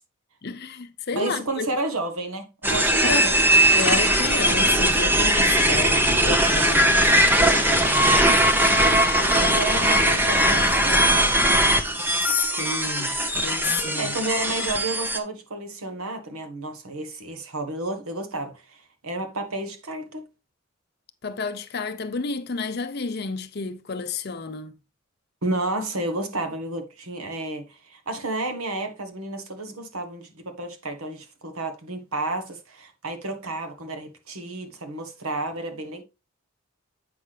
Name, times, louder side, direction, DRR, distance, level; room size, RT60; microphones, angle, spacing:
voice 1, 0.4-1.7 3.0-3.3 3.7-6.8 7.5-8.1 12.6-14.2 21.2-24.7, left 4 dB, 45° left, 0.6 m, -31 dB
voice 2, 1.1-3.5 5.8-7.1 9.1-11.6 13.9-20.2 25.4-36.0, right 2 dB, 80° right, 1.4 m, -31 dB
sound 1, 2.6-15.2, right 1 dB, 10° right, 0.7 m, -20 dB
8.4 x 5.9 x 3.3 m
head